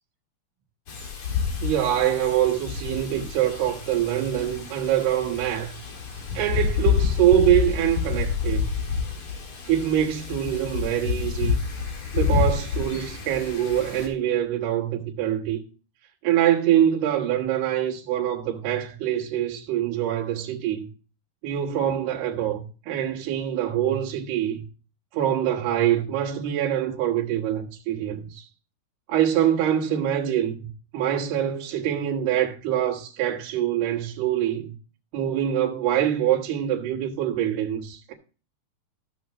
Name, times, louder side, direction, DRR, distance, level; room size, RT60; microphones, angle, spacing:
Wind, 0.9-14.1, left 6 dB, 50° left, 1.8 m, -28 dB
voice 1, 1.6-5.8 6.4-8.6 9.7-11.6 12.1-15.6 16.2-20.9 21.4-24.6 25.1-28.4 29.1-34.7 35.1-38.1, right 11 dB, 85° right, 3.5 m, -24 dB
14.5 x 6.7 x 3.0 m
omnidirectional pair, 4.5 m